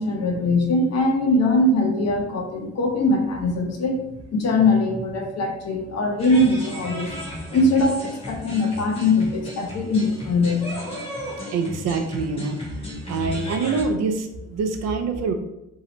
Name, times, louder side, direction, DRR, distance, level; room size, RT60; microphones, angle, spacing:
voice 1, 0.0-4.0 4.3-7.1 7.5-10.7, left 2 dB, 60° left, 2 dB, 0.6 m, -21 dB
sound 1, 6.2-13.8, left 1 dB, 20° left, 0.8 m, -35 dB
voice 2, 11.5-12.6 13.1-15.3, right 4 dB, 60° right, 6 dB, 0.4 m, -25 dB
2.7 x 2.0 x 2.8 m, 0.88 s
cardioid pair, 90°, 30 cm